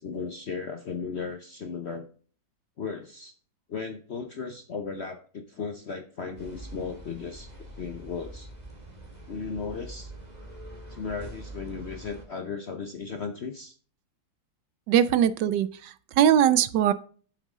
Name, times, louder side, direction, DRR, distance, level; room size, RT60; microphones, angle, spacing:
voice 1, 0.0-2.1 2.8-3.3 3.7-7.5 7.8-8.5 9.3-10.1 10.9-13.7, left 5 dB, 55° left, 7 dB, 0.7 m, -36 dB
sound 1, 6.4-12.2, right 1 dB, 20° right, 2.4 m, -44 dB
voice 2, 14.9-16.9, right 10 dB, 75° right, 15 dB, 1.1 m, -21 dB
9.2 x 7.2 x 3.6 m, 0.42 s
omnidirectional pair, 2.1 m